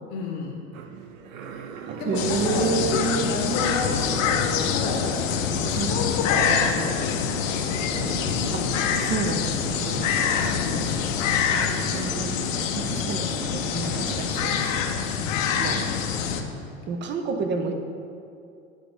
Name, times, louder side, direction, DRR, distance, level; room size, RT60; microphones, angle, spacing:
voice 1, 0.1-0.6 2.0-5.2 5.7-7.1 10.3-11.0 16.1-16.8, left 3 dB, 45° left, 1 dB, 0.9 m, -31 dB
sound 1, 0.7-16.0, right 7 dB, 75° right, 0.6 m, -39 dB
voice 2, 1.9-3.3 5.7-6.0 6.3-6.4 8.5-8.6 9.0-10.0 11.5-12.4 12.7-14.9 15.6-15.8 16.9-17.7, right 5 dB, 25° right, 5 dB, 0.6 m, -29 dB
sound 2, 2.1-16.4, left 7 dB, 70° left, 0.6 m, -25 dB
8.5 x 3.9 x 3.4 m, 2.4 s
hypercardioid pair, 90°, 40 cm